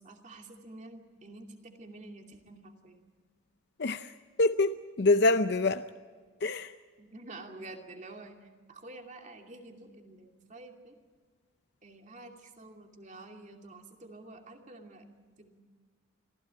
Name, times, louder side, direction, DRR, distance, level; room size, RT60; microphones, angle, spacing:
voice 1, 0.0-3.0 7.0-11.0 11.8-15.1 15.4-15.6, right 2 dB, 35° right, 4 dB, 2.6 m, -49 dB
voice 2, 3.8-4.1 4.4-5.8 6.4-6.7, left 2 dB, 55° left, 10 dB, 0.6 m, -25 dB
25.5 x 16.0 x 9.7 m, 1.6 s
head